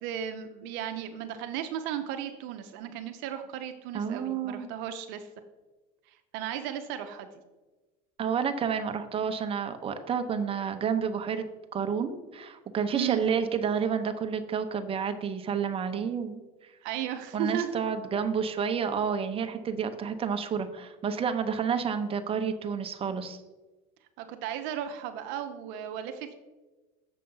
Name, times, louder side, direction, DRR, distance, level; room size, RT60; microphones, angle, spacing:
voice 1, 0.0-5.3 6.1-7.3 12.9-13.2 16.8-17.7 24.2-26.4, right 10 dB, 65° right, 7 dB, 0.7 m, -35 dB
voice 2, 3.9-4.7 8.2-11.5 11.7-16.4 17.3-23.4, right 7 dB, 30° right, 7 dB, 0.8 m, -30 dB
6.8 x 5.0 x 5.5 m, 1.2 s
supercardioid pair, 105°, 20 cm